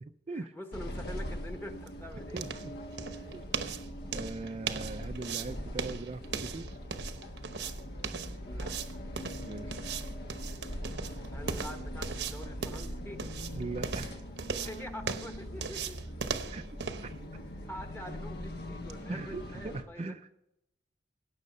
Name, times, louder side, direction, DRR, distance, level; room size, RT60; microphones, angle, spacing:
voice 1, 0.3-2.4 8.4-8.7 11.3-13.2 14.7-16.0 17.3-17.4 17.7-20.1, left 1 dB, 10° left, 6 dB, 1.3 m, -45 dB
sound 1, 0.7-19.8, equal, 60° left, 1.3 m, -41 dB
sound 2, 1.2-19.0, right 5 dB, 65° right, 0.9 m, -40 dB
voice 2, 2.3-2.7 3.3-3.4 4.1-6.7 9.4-9.8 13.5-14.2 16.5-16.6 17.0-17.1 19.1-20.3, right 3 dB, 35° right, 7 dB, 0.4 m, -40 dB
17.0 x 6.4 x 5.4 m, 0.83 s
head